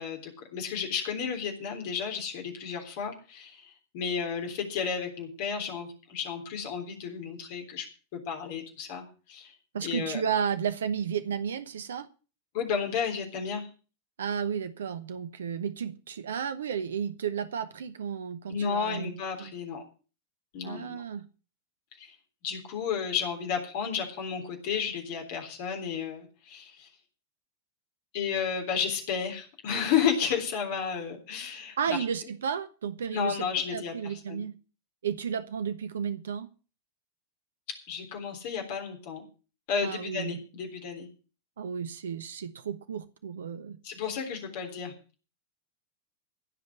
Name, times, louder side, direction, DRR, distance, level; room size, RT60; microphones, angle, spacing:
voice 1, 0.0-7.9 8.1-9.5 9.8-10.2 12.5-13.7 18.5-19.8 20.5-21.0 22.0-22.1 22.4-26.9 28.1-32.0 33.1-34.4 37.9-39.2 39.7-41.1 43.8-44.9, left 7 dB, 50° left, 2 dB, 3.6 m, -32 dB
voice 2, 9.7-12.1 14.2-19.5 20.6-21.2 31.8-33.5 33.7-34.5 35.0-36.5 39.8-40.4 41.6-43.8, right 7 dB, 65° right, 12 dB, 1.0 m, -33 dB
16.0 x 5.4 x 8.4 m, 0.36 s
figure-of-eight pair, 90°, 0 cm